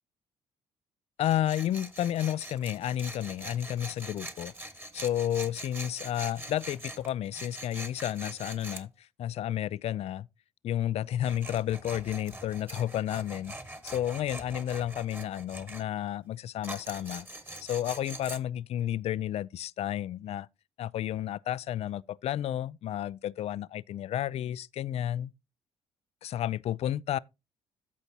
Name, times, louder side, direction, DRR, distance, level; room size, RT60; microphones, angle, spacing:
voice 1, 1.2-4.5 4.9-8.9 9.2-10.3 10.6-13.6 13.8-17.3 17.6-20.5 20.8-25.3 26.2-27.2, left 11 dB, 60° left, 0.4 m, -31 dB
Tools, 1.2-8.8 11.1-15.8 16.6-18.4, right 1 dB, 15° right, 1.7 m, -43 dB
14.5 x 5.2 x 2.9 m
supercardioid pair, 60°, 12 cm